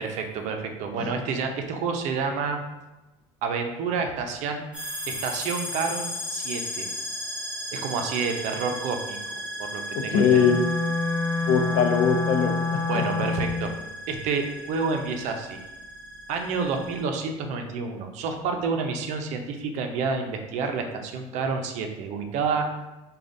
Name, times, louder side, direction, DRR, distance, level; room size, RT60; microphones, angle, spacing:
voice 1, 0.0-2.6 3.4-4.7 5.1-6.9 7.7-9.2 9.6-10.4 12.9-13.7 14.1-15.6 16.3-22.7, right 5 dB, 60° right, 4 dB, 0.5 m, -29 dB
sound 1, 4.7-17.0, equal, 5° right, 1.1 m, -35 dB
voice 2, 9.9-10.6 11.5-13.0, left 7 dB, 75° left, 5 dB, 0.5 m, -22 dB
Wind instrument woodwind instrument, 10.2-13.6, left 4 dB, 30° left, 1.4 m, -27 dB
4.8 x 2.3 x 2.6 m, 1.0 s
supercardioid pair, 120°, 14 cm